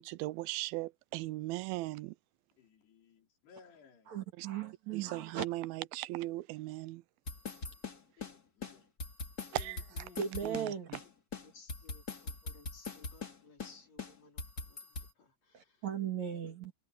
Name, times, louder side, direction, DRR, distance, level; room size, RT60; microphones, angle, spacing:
voice 1, 0.0-2.2 4.4-4.5 4.9-7.0 9.5-10.1 10.4-11.0, right 18 dB, 80° right, 2.3 m, -38 dB
voice 2, 2.6-4.2 8.2-8.9, left 5 dB, 85° left, 6.2 m, -60 dB
voice 3, 4.1-5.4 10.2-10.9 15.5-16.7, right 8 dB, 50° right, 3.1 m, -37 dB
sound 1, 7.3-8.3 8.6-8.7 9.0-10.7 10.9-11.0 11.3-13.3 13.6-13.7 14.0-15.1, left 3 dB, 25° left, 2.7 m, -41 dB
voice 4, 9.5-10.2 11.4-14.9 15.2-15.8 16.3-16.4, left 4 dB, 45° left, 4.9 m, -59 dB
omnidirectional pair, 4.6 m